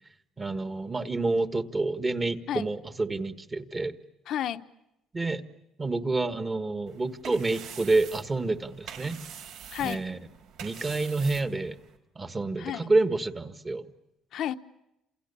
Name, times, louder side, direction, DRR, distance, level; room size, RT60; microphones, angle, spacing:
voice 1, 0.4-3.9 5.1-5.4 5.8-9.2 9.8-10.2 10.6-11.8 12.1-13.9, right 3 dB, 15° right, 1.5 m, -28 dB
voice 2, 4.3-4.6 9.7-10.0 12.6-12.9 14.3-14.6, left 11 dB, 55° left, 1.0 m, -31 dB
sound 1, 6.9-12.0, right 8 dB, 75° right, 4.1 m, -45 dB
29.0 x 28.0 x 7.0 m
cardioid pair, 155°, 0 cm